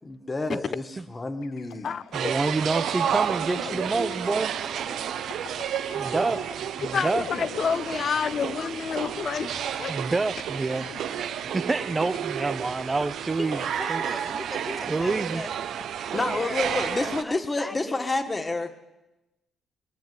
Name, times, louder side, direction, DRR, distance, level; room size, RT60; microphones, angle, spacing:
voice 1, 0.0-1.9 6.1-6.3 16.1-18.7, left 2 dB, 25° left, 7 dB, 1.7 m, -29 dB
sound 1, 1.4-11.9, left 9 dB, 80° left, 0.8 m, -45 dB
voice 2, 2.1-4.5 6.1-6.4 6.8-7.2 9.9-11.0 11.5-13.6 13.9-14.0 14.9-15.4, right 3 dB, 25° right, 14 dB, 0.8 m, -27 dB
sound 2, 2.1-17.2, right 9 dB, 75° right, 0.8 m, -31 dB
voice 3, 6.9-9.9, left 6 dB, 50° left, 18 dB, 0.5 m, -29 dB
voice 4, 13.4-15.6 16.1-18.1, left 1 dB, 10° left, 16 dB, 0.7 m, -38 dB
21.5 x 7.3 x 9.3 m, 1.0 s
cardioid pair, 90°, 0 cm